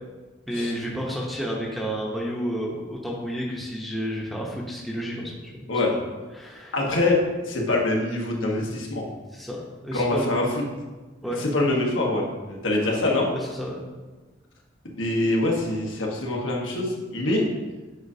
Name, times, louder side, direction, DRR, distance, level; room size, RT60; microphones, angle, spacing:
voice 1, 0.5-5.5 5.9-6.0 6.3-6.7 9.3-9.6 9.8-10.3 11.2-11.4 12.8-13.7, equal, ahead, -4 dB, 0.9 m, -31 dB
voice 2, 6.7-7.2 7.5-9.1 9.9-10.6 11.3-13.3 14.9-17.5, left 2 dB, 90° left, -2 dB, 1.3 m, -24 dB
8.0 x 5.0 x 2.7 m, 1.3 s
head